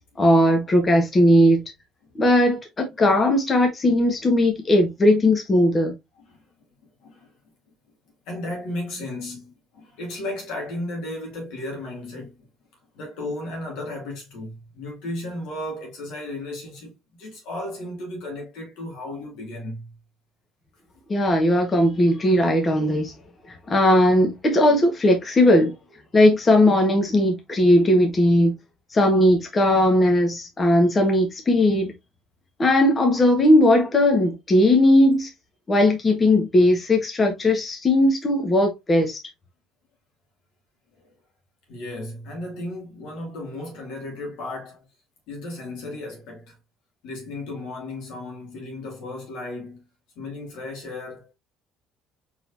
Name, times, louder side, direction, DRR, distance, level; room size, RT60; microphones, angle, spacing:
voice 1, 0.2-1.6 2.1-5.9 21.1-23.1 23.7-25.7 26.1-28.5 28.9-31.9 32.6-35.3 35.7-39.2, left 1 dB, 30° left, 1.3 m, -18 dB
voice 2, 7.0-7.3 8.3-12.5 12.9-19.9 41.0-41.1 41.7-44.8 45.3-46.6 47.0-49.9 50.2-51.3, left 1 dB, 80° left, 2.3 m, -34 dB
4.6 x 3.8 x 2.6 m
supercardioid pair, 90°, 0 cm